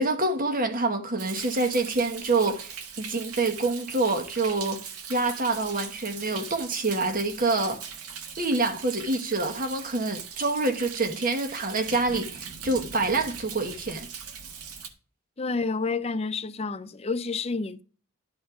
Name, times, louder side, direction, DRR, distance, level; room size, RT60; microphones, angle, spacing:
voice 1, 0.0-4.8 5.1-7.9 8.4-14.1, right 3 dB, 40° right, 1.4 m, -26 dB
Thunder, 1.2-14.9, right 6 dB, 85° right, 1.5 m, -40 dB
voice 2, 15.4-17.8, left 4 dB, 25° left, 0.4 m, -29 dB
11.5 x 4.2 x 5.9 m
head